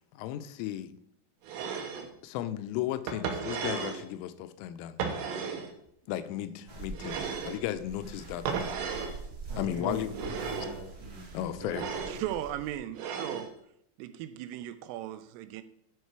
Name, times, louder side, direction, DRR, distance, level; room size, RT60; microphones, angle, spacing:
voice 1, 0.1-0.9 2.2-5.0 6.1-8.8 9.6-10.1 11.3-11.9, left 12 dB, 85° left, 3.1 m, -35 dB
sound 1, 1.4-2.1 3.1-4.0 5.0-5.7 6.9-7.6 8.5-9.2 10.1-10.8 11.6-12.2 12.9-13.5, right 6 dB, 70° right, 3.0 m, -34 dB
sound 2, 6.7-12.8, right 3 dB, 35° right, 2.6 m, -45 dB
voice 2, 9.5-12.0, left 1 dB, 55° right, 1.2 m, -41 dB
voice 3, 12.1-13.5 14.0-15.6, right 12 dB, 90° right, 3.3 m, -37 dB
11.0 x 5.5 x 4.6 m
omnidirectional pair, 5.8 m